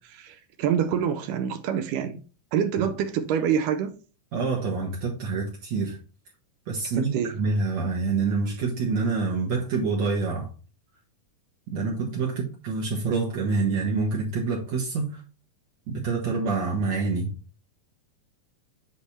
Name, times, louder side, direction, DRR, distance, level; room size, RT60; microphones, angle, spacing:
voice 1, 0.0-2.2 2.5-4.0 7.0-7.4, right 8 dB, 80° right, 2.1 m, -26 dB
voice 2, 4.3-6.0 6.7-10.5 11.7-15.2 15.9-17.4, right 4 dB, 60° right, 2.2 m, -27 dB
8.5 x 3.2 x 4.2 m
omnidirectional pair, 3.9 m